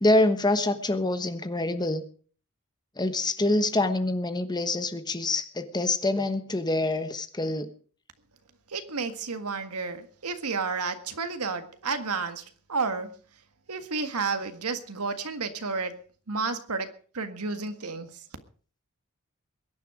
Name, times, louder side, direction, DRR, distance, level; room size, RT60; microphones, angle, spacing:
voice 1, 0.0-2.0 3.0-7.7, left 2 dB, 20° left, 10 dB, 1.1 m, -26 dB
voice 2, 8.7-13.2 13.7-16.0 16.3-18.2, right 4 dB, 85° right, 8 dB, 1.8 m, -31 dB
22.0 x 10.0 x 4.9 m, 0.43 s
head